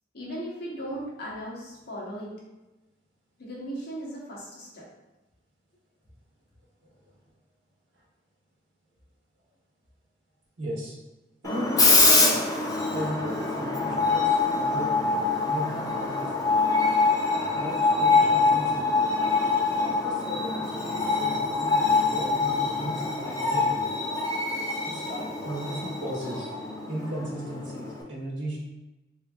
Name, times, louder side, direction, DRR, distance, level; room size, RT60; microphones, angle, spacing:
voice 1, 0.1-2.3 3.4-4.9, equal, 60° left, -4 dB, 1.0 m, -37 dB
voice 2, 10.6-11.0 11.4-12.4 12.9-14.9 15.4-16.5 17.5-18.8 19.8-23.9 24.8-26.5 26.9-28.6, right 1 dB, 75° right, -3 dB, 1.0 m, -36 dB
Screech, 11.4-28.0, left 3 dB, 20° left, 0.5 m, -24 dB
3.6 x 3.2 x 2.3 m, 1.1 s
head